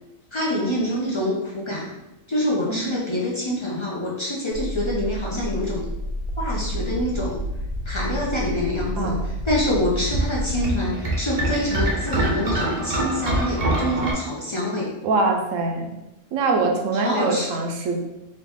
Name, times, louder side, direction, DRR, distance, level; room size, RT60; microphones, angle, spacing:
voice 1, 0.3-1.9 2.3-5.8 6.4-7.4 7.9-14.9 16.9-17.6, left 1 dB, 50° left, -5 dB, 0.3 m, -26 dB
sound 1, 4.5-10.7, equal, 65° left, 0.8 m, -29 dB
voice 2, 9.0-9.3 15.0-15.9 16.3-18.0, right 3 dB, 85° right, 2 dB, 1.0 m, -23 dB
sound 2, 9.5-14.1, right 1 dB, 40° right, 0.6 m, -25 dB
3.0 x 2.6 x 3.5 m, 0.90 s
omnidirectional pair, 1.3 m